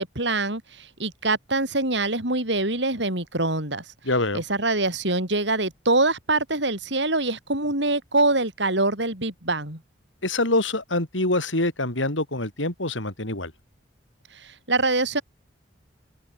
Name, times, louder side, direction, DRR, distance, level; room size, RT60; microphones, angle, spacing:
voice 1, 0.0-3.8 4.3-9.8 14.3-15.2, right 2 dB, 70° right, 6.9 m, -24 dB
voice 2, 4.1-4.4 10.2-13.5, left 2 dB, 90° left, 5.9 m, -25 dB
open air
head